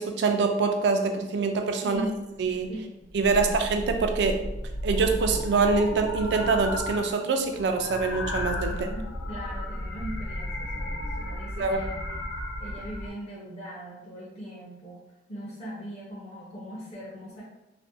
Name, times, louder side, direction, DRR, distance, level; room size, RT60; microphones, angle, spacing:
voice 1, 0.0-2.0 2.4-2.7 3.1-4.4 4.8-8.9 11.6-11.8, right 4 dB, 70° right, 5 dB, 0.3 m, -25 dB
voice 2, 1.8-2.2 2.7-3.6 8.6-12.3 12.6-17.4, equal, 35° left, -7 dB, 0.5 m, -40 dB
sound 1, 1.9-2.0 2.4-2.7 3.1-7.2 7.4-13.1, left 1 dB, 90° left, 0.4 m, -33 dB
2.5 x 2.0 x 2.5 m, 0.93 s
head